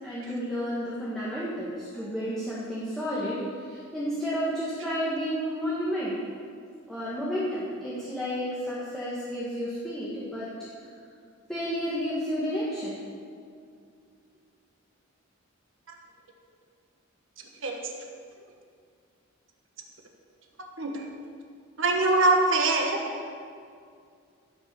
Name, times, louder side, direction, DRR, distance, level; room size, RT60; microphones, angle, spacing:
voice 1, 0.0-6.2 6.9-10.5 11.5-13.0 23.1-23.2, equal, ahead, -10 dB, 1.9 m, -31 dB
voice 2, 21.8-23.0, right 2 dB, 65° right, 2 dB, 1.4 m, -23 dB
15.5 x 6.1 x 7.2 m, 2.2 s
head